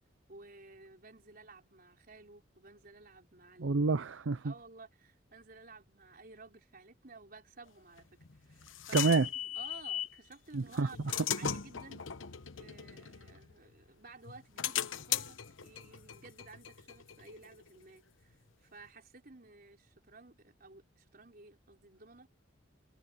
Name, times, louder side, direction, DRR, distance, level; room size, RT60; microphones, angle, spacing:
voice 1, 0.3-3.8 4.4-9.0 9.4-12.0 12.5-22.3, right 3 dB, 50° right, 4.3 m, -55 dB
voice 2, 3.6-4.5 8.9-9.3 10.5-10.9, right 3 dB, 75° right, 0.6 m, -28 dB
sound 1, 8.0-10.2 10.7-13.8 14.2-17.7, left 10 dB, 85° left, 1.0 m, -38 dB
head